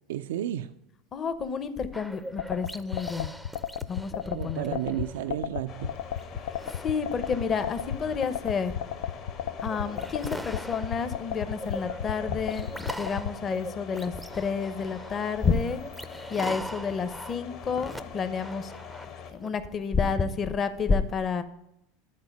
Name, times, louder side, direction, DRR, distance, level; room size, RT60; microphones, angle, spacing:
voice 1, 0.1-0.7 4.3-6.0, right 12 dB, 85° right, 11 dB, 0.3 m, -32 dB
voice 2, 1.1-3.3 3.9-5.0 6.8-8.7 9.6-15.8 16.3-18.7 19.3-21.4, left 5 dB, 30° left, 12 dB, 0.7 m, -30 dB
sound 1, 1.9-5.4 5.8-19.5, equal, ahead, 0.5 m, -42 dB
sound 2, 2.4-13.3, left 10 dB, 80° left, 0.4 m, -33 dB
sound 3, 5.7-19.3, left 7 dB, 50° left, 1.2 m, -44 dB
9.7 x 4.1 x 5.2 m, 0.83 s
supercardioid pair, 125°, 0 cm